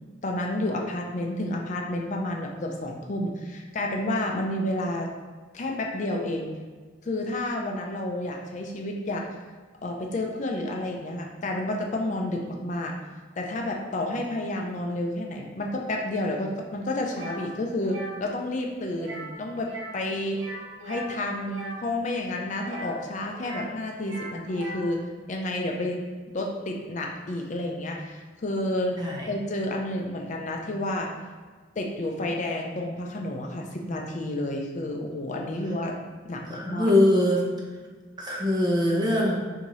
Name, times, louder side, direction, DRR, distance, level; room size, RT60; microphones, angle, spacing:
voice 1, 0.2-5.1 5.5-6.5 7.0-9.2 9.8-12.9 13.4-20.5 20.8-25.0 25.3-29.0 29.3-31.1 31.8-36.0 36.2-36.9, left 1 dB, 40° left, 1 dB, 0.5 m, -30 dB
sound 1, 17.1-17.4 17.8-18.2 18.9-19.3 19.6-20.0 20.3-21.8 22.6-23.7 24.0-24.9, right 1 dB, 80° right, 0.7 m, -39 dB
voice 2, 29.0-29.3 36.5-37.4 38.2-39.4, left 1 dB, 20° right, -2 dB, 0.8 m, -22 dB
6.4 x 2.7 x 3.1 m, 1.5 s
head